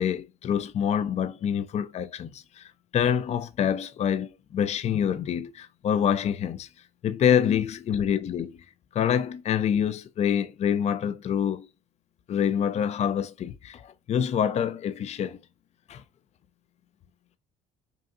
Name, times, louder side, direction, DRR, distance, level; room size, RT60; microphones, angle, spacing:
voice 1, 0.0-6.7 7.0-8.6 8.9-11.7 12.3-15.4 15.9-16.0, left 8 dB, 40° left, 0.5 m, -26 dB
5.3 x 2.7 x 2.5 m
cardioid pair, 110°, 17 cm